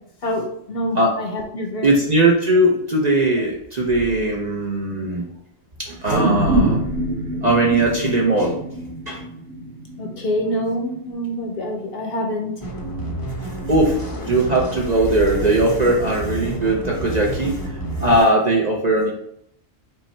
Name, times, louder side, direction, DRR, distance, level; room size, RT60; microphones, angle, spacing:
voice 1, 0.2-1.9 10.0-12.5, equal, 55° left, 2 dB, 0.9 m, -26 dB
voice 2, 1.8-5.2 5.8-6.8 7.4-8.6 9.1-9.2 13.4-17.7 18.0-19.1, right 1 dB, 45° right, -2 dB, 0.6 m, -19 dB
sound 1, 6.0-10.5 11.0-11.1, right 1 dB, 80° right, 1.1 m, -24 dB
sound 2, 12.6-18.2, right 1 dB, 25° left, 0.6 m, -29 dB
5.6 x 2.2 x 4.1 m, 0.72 s
omnidirectional pair, 1.3 m